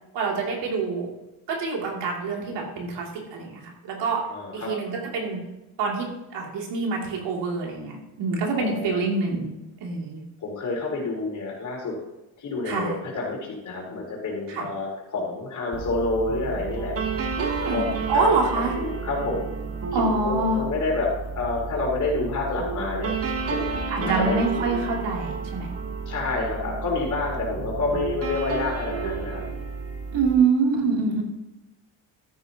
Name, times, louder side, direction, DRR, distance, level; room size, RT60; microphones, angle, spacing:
voice 1, 0.1-1.1 1.5-4.2 4.5-5.4 5.8-9.5 9.8-10.2 12.6-13.0 14.5-14.7 17.4-18.8 19.9-20.6 23.9-25.7 30.1-31.2, right 4 dB, 75° right, -1 dB, 3.1 m, -26 dB
voice 2, 4.3-4.7 8.5-9.0 10.4-11.9 12.4-16.9 17.7-17.9 18.8-19.5 19.9-23.1 23.5-24.4 26.1-29.4, left 3 dB, 45° left, -2 dB, 4.2 m, -28 dB
sound 1, 15.7-30.4, right 5 dB, 35° right, 1.4 m, -31 dB
13.0 x 9.9 x 3.0 m, 0.99 s
cardioid pair, 150°, 43 cm